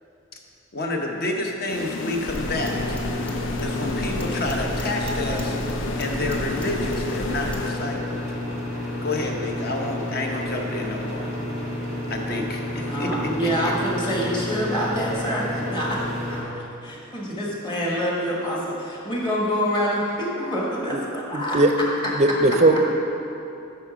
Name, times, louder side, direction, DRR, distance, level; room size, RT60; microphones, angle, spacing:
voice 1, 0.7-3.0 3.6-5.5 6.0-8.2 9.0-11.3 12.1-13.1 13.6-13.7, left 2 dB, 50° left, 2 dB, 0.8 m, -29 dB
sound 1, 1.7-8.3, left 4 dB, 65° left, 0.4 m, -33 dB
sound 2, 2.3-16.4, left 1 dB, 85° left, 1.7 m, -30 dB
sound 3, 2.3-7.7, equal, 5° left, 0.7 m, -33 dB
voice 2, 12.9-22.1, equal, 25° left, -3 dB, 1.4 m, -26 dB
voice 3, 21.3-21.7 22.2-22.8, right 2 dB, 35° right, 6 dB, 0.4 m, -18 dB
8.3 x 5.8 x 4.9 m, 2.8 s
head